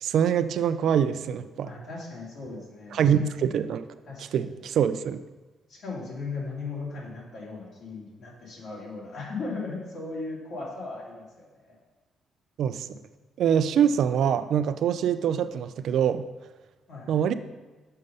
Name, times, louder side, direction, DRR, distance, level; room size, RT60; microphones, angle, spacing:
voice 1, 0.0-1.7 2.9-3.8 4.2-5.2 12.6-12.9 13.4-16.3 17.1-17.3, right 8 dB, 70° right, 12 dB, 0.4 m, -24 dB
voice 2, 1.6-3.3 4.1-4.5 5.7-11.8 16.9-17.1, left 3 dB, 70° left, -4 dB, 2.6 m, -37 dB
6.4 x 5.5 x 5.3 m, 1.2 s
cardioid pair, 90°, 0 cm